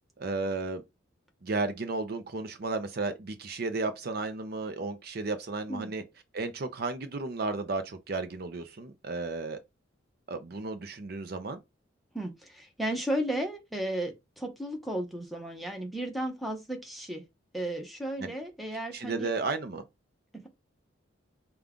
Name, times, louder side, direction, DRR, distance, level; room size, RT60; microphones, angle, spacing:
voice 1, 0.2-0.8 1.4-6.0 6.3-9.6 10.3-11.6 18.2-18.3 18.9-19.8, right 3 dB, 50° right, 0.5 m, -33 dB
voice 2, 12.1-17.2 17.5-19.3, right 1 dB, ahead, 0.8 m, -34 dB
5.2 x 2.3 x 3.6 m
head